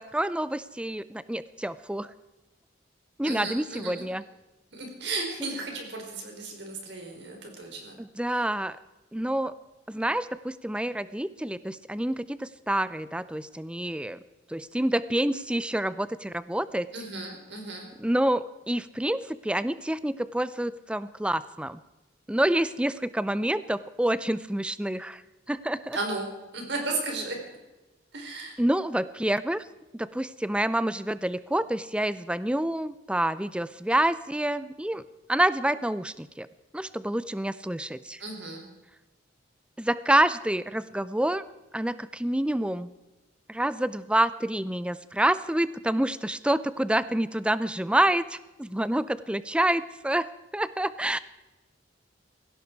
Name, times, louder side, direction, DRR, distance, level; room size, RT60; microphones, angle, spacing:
voice 1, 0.0-2.1 3.2-4.2 8.0-8.8 9.1-9.5 9.9-14.2 14.5-16.9 18.0-21.8 22.3-25.2 25.5-26.0 28.6-29.6 30.0-35.0 35.3-36.5 36.7-38.2 39.8-41.4 41.7-42.9 43.5-51.2, right 1 dB, 5° right, 15 dB, 0.5 m, -27 dB
voice 2, 3.2-4.0 4.7-7.9 16.9-17.9 25.9-26.3 26.5-27.4 28.1-28.5 38.2-38.6, right 3 dB, 65° right, 2 dB, 4.5 m, -34 dB
18.0 x 16.5 x 4.7 m, 1.1 s
head